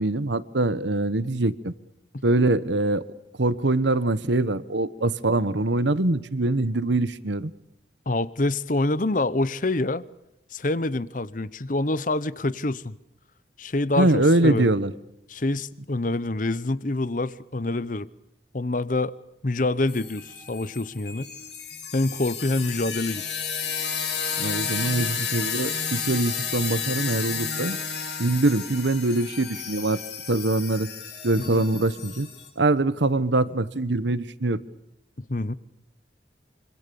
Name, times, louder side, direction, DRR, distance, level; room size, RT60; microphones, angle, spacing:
voice 1, 0.0-1.7 2.2-3.0 3.4-7.5 14.0-14.9 24.4-27.8 28.2-30.0 30.3-30.9 31.2-32.3 32.6-34.6, right 2 dB, 80° right, 1.2 m, -23 dB
voice 2, 8.1-10.0 10.5-12.9 13.6-14.7 15.3-18.1 18.5-19.1 19.4-21.3 21.9-23.2 31.5-31.6 35.3-35.5, left 2 dB, 45° left, 0.9 m, -26 dB
sound 1, 19.9-32.5, left 6 dB, 70° left, 7.9 m, -32 dB
26.0 x 25.0 x 7.0 m
head